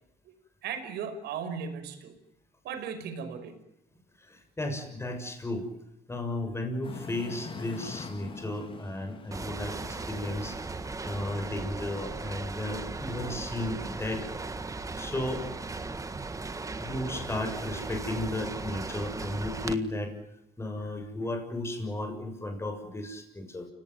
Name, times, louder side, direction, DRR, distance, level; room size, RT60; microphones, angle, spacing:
voice 1, 0.6-2.2 2.6-3.6, right 6 dB, 75° right, 9 dB, 5.6 m, -36 dB
voice 2, 4.2-5.7 6.1-10.6 11.0-14.3 15.0-15.5 16.8-20.1 20.6-23.7, left 1 dB, 15° left, 5 dB, 6.9 m, -34 dB
sound 1, 6.8-11.9, left 4 dB, 30° left, 2.6 m, -45 dB
sound 2, 9.3-19.8, right 3 dB, 20° right, 1.7 m, -37 dB
29.0 x 18.5 x 9.2 m, 0.88 s
cardioid pair, 110°, 17 cm